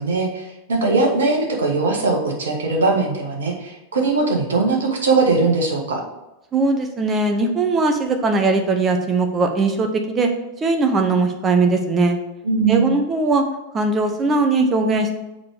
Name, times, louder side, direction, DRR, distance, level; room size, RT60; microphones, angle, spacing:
voice 1, 0.0-6.0 12.4-12.9, right 3 dB, 65° right, -1 dB, 1.7 m, -20 dB
voice 2, 6.5-10.3 10.6-12.2 12.7-13.4 13.7-15.1, right 3 dB, 20° right, 4 dB, 1.1 m, -19 dB
7.1 x 4.9 x 5.0 m, 0.96 s
figure-of-eight pair, 90°, 0 cm